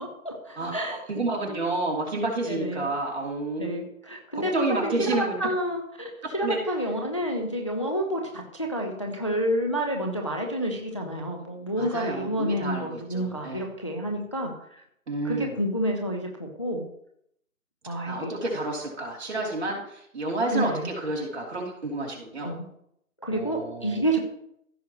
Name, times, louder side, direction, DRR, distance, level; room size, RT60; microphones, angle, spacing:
voice 1, 0.0-1.0 1.5-1.6 2.5-2.9 3.6-4.5 5.0-14.5 15.2-16.9 17.9-18.4 20.5-20.9 22.4-22.7 23.2-24.2, equal, 20° left, 2 dB, 0.5 m, -29 dB
voice 2, 0.6-3.9 4.3-5.4 6.2-6.6 11.8-13.6 15.1-15.6 18.0-22.5 23.3-24.0, right 2 dB, 50° right, -2 dB, 3.0 m, -30 dB
15.0 x 6.4 x 3.0 m, 0.73 s
figure-of-eight pair, 160°, 43 cm